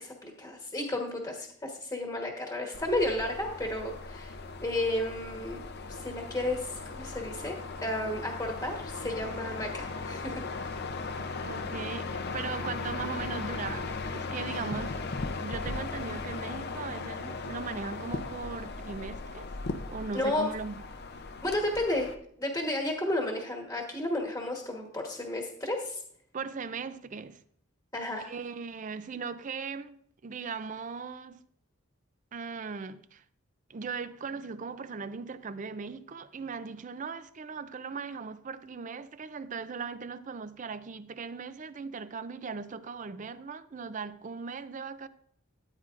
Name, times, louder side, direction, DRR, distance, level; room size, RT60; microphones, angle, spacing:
voice 1, 0.0-4.4 4.6-10.4 14.5-14.6 20.1-20.5 21.4-22.1 22.4-26.0 27.9-28.2, left 1 dB, 15° left, 1.2 m, -32 dB
sound 1, 2.7-22.1, left 3 dB, 50° left, 0.6 m, -37 dB
voice 2, 11.4-15.0 15.4-19.5 19.9-20.9 26.3-27.4 28.2-31.4 32.3-33.2 33.7-45.1, right 5 dB, 40° right, 0.4 m, -38 dB
13.0 x 8.9 x 2.5 m
head